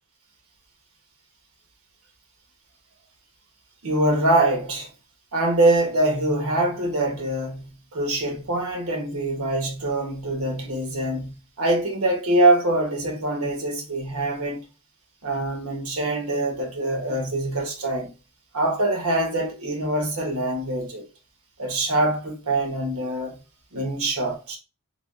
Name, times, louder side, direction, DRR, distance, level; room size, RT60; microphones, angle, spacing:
voice 1, 3.8-4.9 5.3-14.7 15.2-18.1 18.5-21.0 21.6-23.4 23.7-24.6, right 1 dB, 70° right, 1.1 m, -24 dB
3.4 x 3.0 x 2.4 m
head